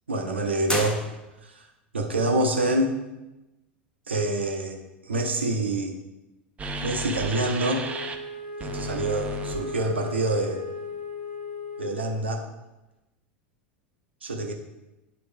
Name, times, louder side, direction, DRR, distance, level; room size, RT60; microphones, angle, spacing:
voice 1, 0.1-1.0 1.4-1.6 1.9-3.0 4.1-6.0 6.8-7.9 8.6-10.6 11.8-12.4 14.2-14.5, right 2 dB, 80° right, 3 dB, 1.0 m, -26 dB
sound 1, 0.7-1.7, left 1 dB, 10° left, 1.1 m, -32 dB
sound 2, 6.6-8.2 8.6-10.2, right 2 dB, 20° right, 0.8 m, -34 dB
Wind instrument woodwind instrument, 7.7-12.3, left 4 dB, 80° left, 1.1 m, -37 dB
10.0 x 4.3 x 3.5 m, 0.99 s
figure-of-eight pair, 85°, 6 cm